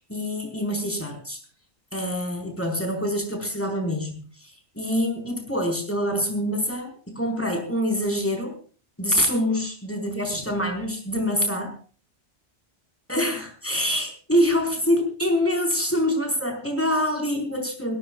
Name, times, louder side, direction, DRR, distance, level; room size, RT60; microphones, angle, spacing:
voice 1, 0.0-1.4 1.9-8.6 9.0-11.8 13.1-18.0, equal, 10° left, 3 dB, 4.4 m, -25 dB
22.0 x 17.0 x 2.3 m, 0.40 s
omnidirectional pair, 1.2 m